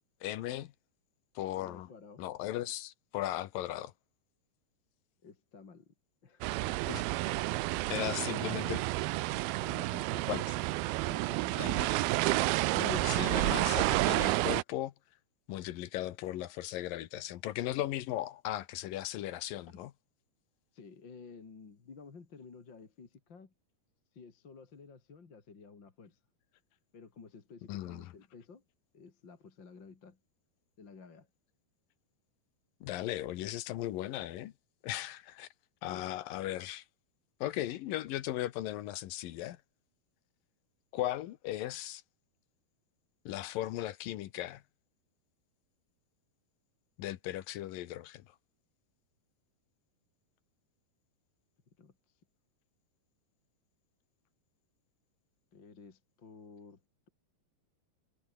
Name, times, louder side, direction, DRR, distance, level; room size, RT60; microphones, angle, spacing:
voice 1, 0.2-0.7 1.4-1.9 2.2-3.9 6.9-7.0 7.9-8.9 10.3-10.5 11.6-11.9 12.7-14.9 15.5-19.9 27.7-28.1 32.8-34.5 34.8-35.5 35.8-36.8 37.4-39.6 40.9-42.0 43.3-44.6 47.0-48.3, left 14 dB, 70° left, 2.5 m, -37 dB
voice 2, 1.6-2.2 5.2-5.9 6.2-6.4 8.0-8.1 9.6-10.3 11.0-11.6 19.7-19.8 20.7-23.5 24.1-26.2 26.9-28.6 28.9-30.2 30.8-31.3 35.9-36.0 51.8-51.9 55.5-56.8, left 5 dB, 35° left, 2.9 m, -52 dB
sound 1, 6.4-14.6, right 19 dB, 80° right, 2.6 m, -30 dB
omnidirectional pair, 4.5 m